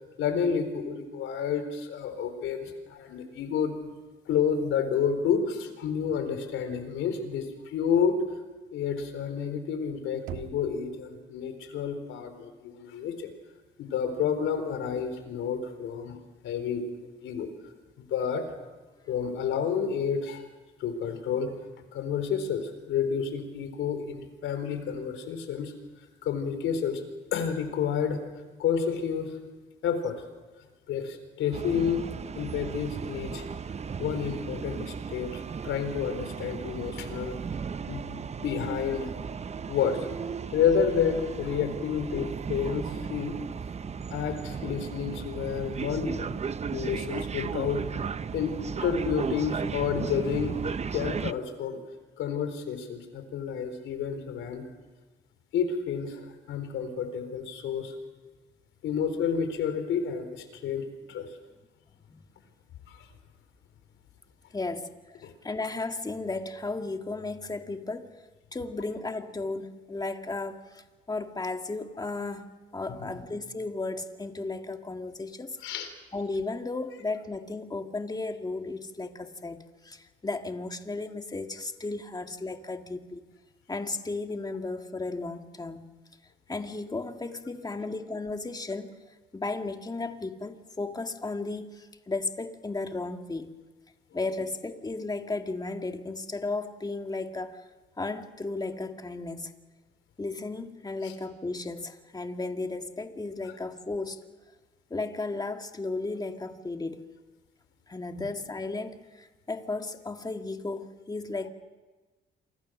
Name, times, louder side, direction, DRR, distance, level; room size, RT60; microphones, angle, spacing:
voice 1, 0.2-3.8 4.3-8.2 8.7-13.3 13.8-16.2 16.4-16.9 17.2-17.5 18.0-18.5 19.1-20.5 20.8-21.6 21.9-25.7 26.2-27.0 27.3-28.2 28.6-29.4 29.8-30.2 30.9-32.0 32.4-33.4 34.0-37.4 37.9-39.1 39.7-40.1 40.5-43.4 44.1-46.2 46.7-47.9 48.3-48.6 48.8-50.6 50.9-51.8 52.2-54.7 55.5-57.9 58.8-61.4 62.9-63.1 65.2-65.3 72.9-73.1 75.6-75.9 101.0-101.1 103.4-103.5, left 7 dB, 85° left, 4.1 m, -30 dB
Knock, 10.3-11.2, right 10 dB, 85° right, 1.7 m, -41 dB
sound 1, 31.5-51.3, right 6 dB, 35° right, 0.7 m, -35 dB
voice 2, 64.5-68.2 68.5-75.6 76.1-83.3 83.7-85.9 86.5-89.0 89.3-93.5 94.1-97.6 98.0-99.5 100.2-104.2 104.9-107.1 107.9-111.5, left 3 dB, 20° left, 2.1 m, -34 dB
28.0 x 25.0 x 6.4 m
cardioid pair, 90°, 20 cm